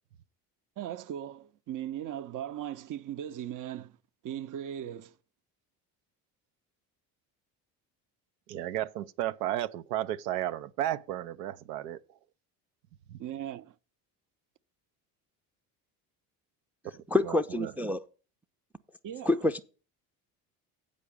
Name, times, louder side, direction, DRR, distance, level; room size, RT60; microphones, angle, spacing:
voice 1, 0.8-4.0 4.2-5.1 13.2-13.7 19.0-19.4, right 10 dB, 45° right, 0.7 m, -38 dB
voice 2, 8.5-12.0 13.1-13.2 16.9-17.4 17.6-17.7, right 13 dB, 85° right, 0.6 m, -33 dB
voice 3, 17.1-18.0 19.3-19.6, left 2 dB, 5° right, 0.4 m, -27 dB
8.3 x 5.1 x 6.7 m
hypercardioid pair, 70°, 45 cm